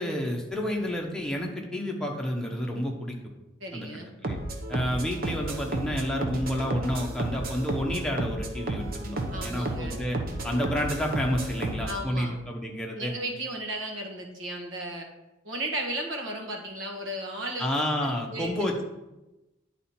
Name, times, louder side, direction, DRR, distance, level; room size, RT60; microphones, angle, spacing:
voice 1, 0.0-3.2 3.7-3.9 4.2-4.4 4.7-10.2 10.4-13.1 17.6-18.8, equal, 5° left, -1 dB, 1.0 m, -30 dB
voice 2, 3.6-4.1 9.3-10.0 11.9-12.3 13.0-15.1 15.4-17.7 18.0-18.5, right 1 dB, 75° right, 1 dB, 1.5 m, -35 dB
sound 1, 4.2-12.0, right 2 dB, 50° right, 0.9 m, -32 dB
9.8 x 4.2 x 4.3 m, 0.99 s
head